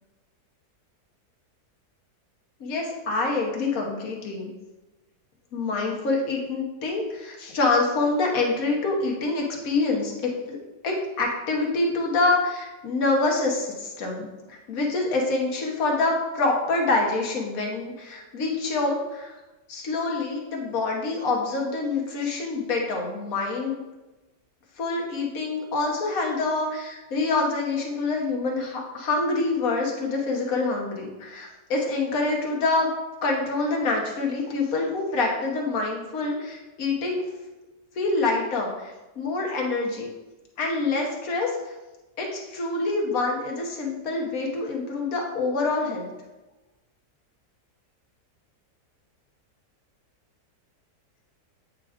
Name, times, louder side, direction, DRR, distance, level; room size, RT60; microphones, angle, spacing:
voice 1, 2.6-4.5 5.5-10.6 10.8-19.4 19.7-23.8 24.8-32.9 33.2-37.2 37.9-40.1 40.6-41.7 42.2-46.1, left 3 dB, 55° left, 0 dB, 1.4 m, -26 dB
8.2 x 4.9 x 2.4 m, 1.1 s
omnidirectional pair, 1.8 m